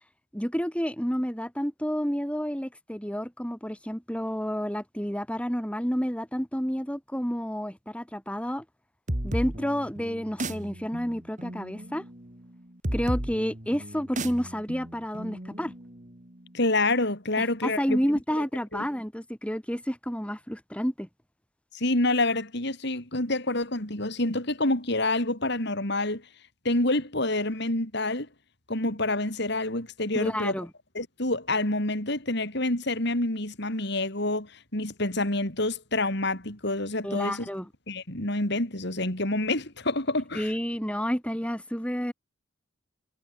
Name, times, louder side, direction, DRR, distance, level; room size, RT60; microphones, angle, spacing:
voice 1, 0.3-8.6 9.2-12.0 12.9-15.7 17.4-21.1 30.1-30.7 37.0-37.7 40.3-42.1, equal, 5° left, 6.0 m, -30 dB
sound 1, 9.1-16.5, right 1 dB, 40° right, 3.0 m, -35 dB
voice 2, 16.5-18.0 18.7-18.8 21.7-26.2 26.7-28.3 28.7-30.5 31.0-37.5 37.9-40.5, left 2 dB, 60° left, 5.2 m, -27 dB
head